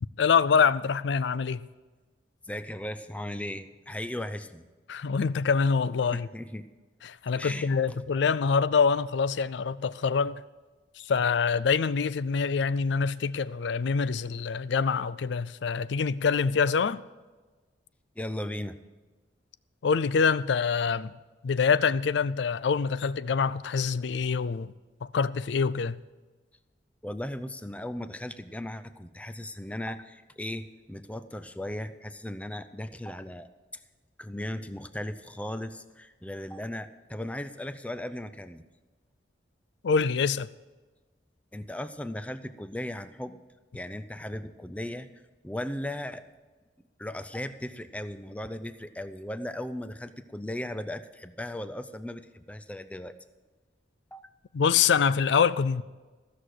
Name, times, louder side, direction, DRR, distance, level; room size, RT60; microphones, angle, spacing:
voice 1, 0.2-1.6 4.9-6.3 7.0-10.4 11.0-17.0 19.8-21.1 21.4-24.7 25.0-26.0 39.8-40.5 54.5-55.8, left 5 dB, 70° left, 0.4 m, -25 dB
voice 2, 2.4-4.7 6.1-6.7 7.3-8.0 18.2-18.8 27.0-33.5 34.2-38.6 41.5-43.4 43.7-45.1 45.4-46.2 47.0-53.2 54.1-54.3, left 1 dB, 5° left, 0.5 m, -37 dB
15.0 x 6.4 x 7.7 m
head